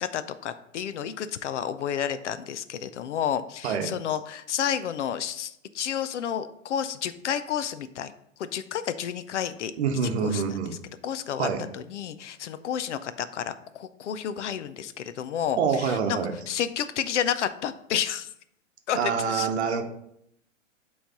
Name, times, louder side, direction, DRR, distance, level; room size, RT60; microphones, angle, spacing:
voice 1, 0.0-8.1 8.4-9.7 10.2-10.4 11.0-11.5 11.7-16.2 16.5-18.3 18.9-19.0 19.3-19.5, left 9 dB, 65° left, 13 dB, 0.5 m, -30 dB
voice 2, 9.8-10.8 11.4-11.6 15.6-16.3 18.9-19.8, right 6 dB, 55° right, 6 dB, 0.9 m, -26 dB
7.9 x 3.2 x 4.0 m, 0.73 s
hypercardioid pair, 140°, 39 cm